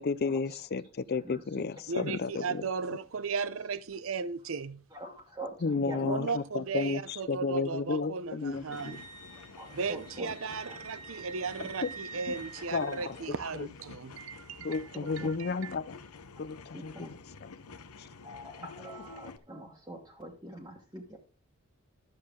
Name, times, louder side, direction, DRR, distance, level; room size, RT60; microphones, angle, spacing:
voice 1, 0.0-2.6 5.6-9.0 11.8-11.9 12.3-12.4 12.7-13.2 13.5-13.7 14.6-16.0 16.4-17.5 18.0-18.1 18.6-18.7, left 4 dB, 45° left, 0.5 m, -33 dB
voice 2, 1.2-1.6 4.9-6.2 9.5-10.3 10.7-10.8 12.7-13.1 15.2-15.3 16.7-17.1 18.2-21.2, right 1 dB, 15° right, 1.3 m, -44 dB
voice 3, 1.9-4.8 6.0-9.0 9.7-14.8 15.1-15.7, right 5 dB, 65° right, 0.6 m, -36 dB
sound 1, 8.4-19.4, left 4 dB, 90° left, 0.8 m, -50 dB
Wind instrument woodwind instrument, 8.7-13.2, right 5 dB, 20° left, 2.1 m, -47 dB
12.0 x 7.6 x 3.7 m
head